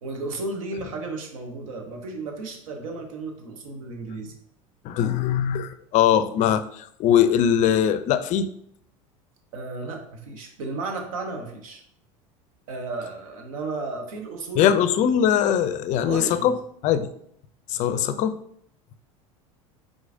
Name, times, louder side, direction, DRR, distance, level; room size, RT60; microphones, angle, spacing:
voice 1, 0.0-4.3 9.5-11.8 12.7-14.8 15.9-16.5 17.8-18.0, right 3 dB, 75° right, 3 dB, 0.9 m, -34 dB
voice 2, 4.8-8.5 14.6-16.5 16.8-17.1 17.7-18.3, left 9 dB, 45° left, 12 dB, 0.4 m, -21 dB
4.7 x 3.8 x 2.5 m, 0.68 s
hypercardioid pair, 80°, 18 cm